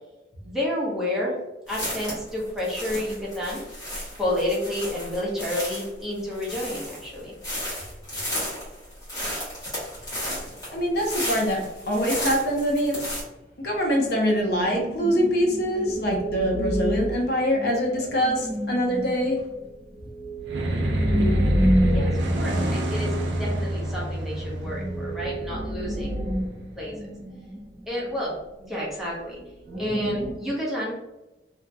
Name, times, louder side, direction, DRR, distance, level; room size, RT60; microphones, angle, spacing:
voice 1, 0.4-1.4 1.7-3.6 4.2-7.3 21.9-26.2 26.8-27.0 27.9-29.4 29.8-31.0, left 1 dB, ahead, -6 dB, 0.7 m, -30 dB
sound 1, 1.7-13.2, equal, 20° left, 1.4 m, -33 dB
voice 2, 10.7-13.0 13.6-19.4, equal, 60° left, 0 dB, 0.6 m, -24 dB
sound 2, 14.5-23.5 23.8-23.9 24.2-28.3 28.7-28.8 29.7-30.3, equal, 55° right, 0.7 m, -29 dB
sound 3, 20.4-27.0, right 1 dB, 90° right, 0.5 m, -28 dB
2.8 x 2.5 x 2.2 m, 1.0 s
head